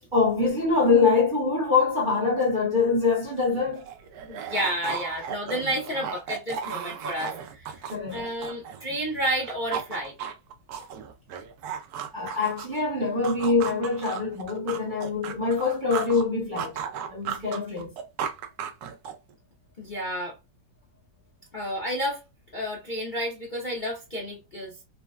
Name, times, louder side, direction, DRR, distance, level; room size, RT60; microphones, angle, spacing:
voice 1, 0.1-3.9 7.9-8.3 12.1-16.8 17.1-17.9, left 4 dB, 40° right, 0.7 m, -24 dB
sound 1, 3.2-3.3 3.5-9.0 9.3-12.8 13.2-16.3 16.6-19.3, right 8 dB, 70° right, 0.9 m, -35 dB
voice 2, 4.3-7.8 8.1-10.1 19.8-20.4 21.5-22.2 22.5-24.8, equal, 40° left, 0.7 m, -31 dB
3.9 x 2.2 x 2.2 m
omnidirectional pair, 2.0 m